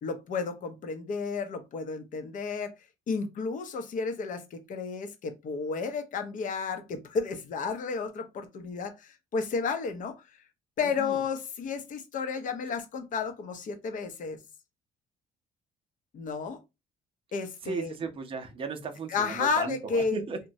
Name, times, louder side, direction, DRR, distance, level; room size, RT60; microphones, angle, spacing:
voice 1, 0.0-2.8 3.1-10.1 10.8-14.4 16.1-16.6 17.3-17.9 19.1-20.2, left 5 dB, 50° left, 0.6 m, -32 dB
voice 2, 17.6-20.4, right 4 dB, 30° right, 0.6 m, -35 dB
3.0 x 2.2 x 2.6 m
cardioid pair, 110°, 17 cm